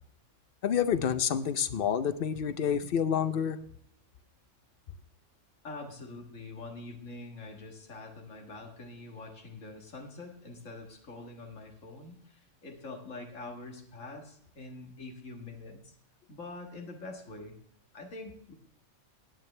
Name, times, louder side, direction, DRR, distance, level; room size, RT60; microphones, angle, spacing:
voice 1, 0.6-3.6, left 8 dB, 55° left, 13 dB, 0.7 m, -28 dB
voice 2, 5.6-16.0 16.3-17.6 17.9-18.5, left 2 dB, 90° left, 2 dB, 2.0 m, -45 dB
16.5 x 9.5 x 3.3 m, 0.68 s
omnidirectional pair, 1.3 m